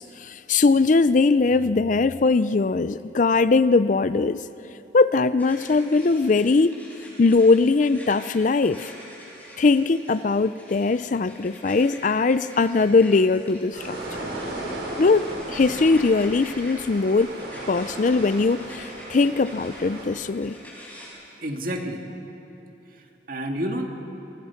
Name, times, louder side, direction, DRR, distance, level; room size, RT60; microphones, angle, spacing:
voice 1, 0.0-4.4 4.9-6.8 7.2-8.9 9.6-14.0 15.0-17.4 17.7-20.6, left 3 dB, 45° left, 14 dB, 0.4 m, -20 dB
sound 1, 5.4-21.1, equal, 10° left, 5.7 m, -45 dB
sound 2, 13.7-20.0, right 1 dB, 65° right, 6.7 m, -35 dB
voice 2, 21.4-22.1 22.9-23.9, equal, 50° right, 3 dB, 2.1 m, -30 dB
28.0 x 23.0 x 5.8 m, 3.0 s
head